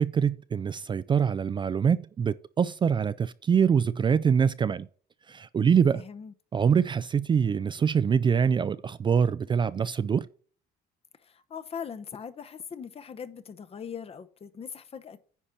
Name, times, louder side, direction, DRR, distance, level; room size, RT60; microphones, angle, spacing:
voice 1, 0.0-4.9 5.3-6.0 6.5-10.3, right 7 dB, 30° right, 0.4 m, -24 dB
voice 2, 5.9-6.3 11.2-15.2, left 7 dB, 35° left, 0.9 m, -40 dB
10.0 x 4.4 x 5.9 m
cardioid pair, 110°, 17 cm